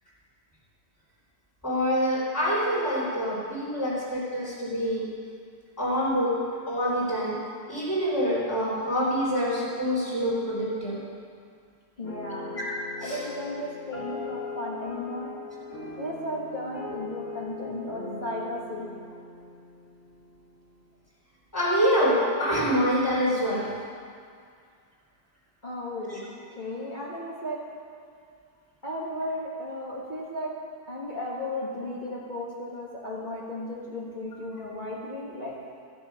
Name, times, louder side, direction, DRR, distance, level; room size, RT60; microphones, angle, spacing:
voice 1, 1.6-5.0 5.8-6.4 6.7-7.4 7.7-11.0 13.0-13.2 21.5-23.6, equal, 10° left, -11 dB, 3.3 m, -26 dB
sound 1, 12.0-20.6, left 4 dB, 60° left, 2.4 m, -40 dB
voice 2, 12.0-12.6 13.0-15.3 16.0-18.9 25.6-27.6 27.9-28.4 28.8-30.5 30.9-35.5, left 1 dB, 30° left, -6 dB, 1.8 m, -35 dB
14.5 x 9.5 x 5.7 m, 2.2 s
omnidirectional pair, 1.7 m